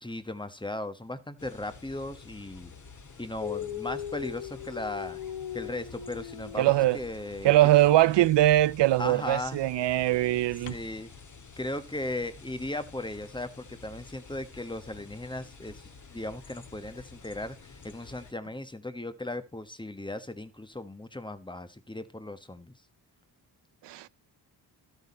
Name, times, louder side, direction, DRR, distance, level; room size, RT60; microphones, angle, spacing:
voice 1, 0.0-2.7 3.2-5.2 5.5-7.5 9.0-9.6 10.7-11.1 11.6-22.7, left 1 dB, 10° left, 1.2 m, -37 dB
sound 1, 1.4-18.3, left 5 dB, 45° left, 2.0 m, -50 dB
Dog, 3.4-7.4 8.4-8.6 10.6-10.8, left 10 dB, 85° left, 1.2 m, -39 dB
voice 2, 6.6-7.0 7.4-10.7 23.8-24.1, right 15 dB, 75° right, 0.5 m, -22 dB
12.5 x 8.2 x 4.3 m
cardioid pair, 75°, 43 cm